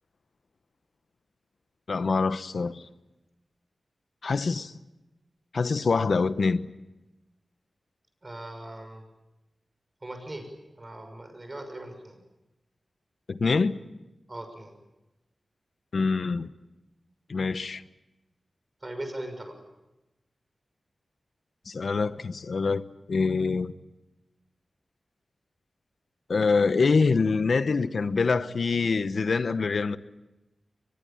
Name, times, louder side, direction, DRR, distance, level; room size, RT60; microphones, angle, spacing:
voice 1, 1.9-2.8 4.2-4.7 5.5-6.7 13.3-13.8 15.9-16.5 17.3-17.8 21.7-22.8 23.1-23.7 26.3-30.0, left 4 dB, 70° left, 1.0 m, -25 dB
voice 2, 8.2-9.0 10.0-10.5 10.8-12.2 14.3-14.7 18.8-19.5, right 1 dB, 30° right, 6.2 m, -39 dB
23.5 x 22.0 x 8.8 m
wide cardioid pair, 75°, 0 cm